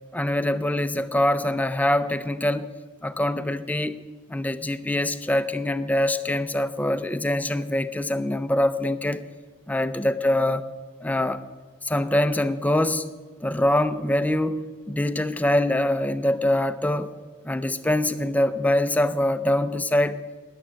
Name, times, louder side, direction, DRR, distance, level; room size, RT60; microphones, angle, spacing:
voice 1, 0.1-2.7 3.0-4.0 4.3-9.3 9.7-10.6 11.0-11.4 11.8-13.1 13.4-14.6 14.9-17.1 17.4-20.2, left 1 dB, 10° left, 0.5 m, -24 dB
13.0 x 10.0 x 7.6 m
head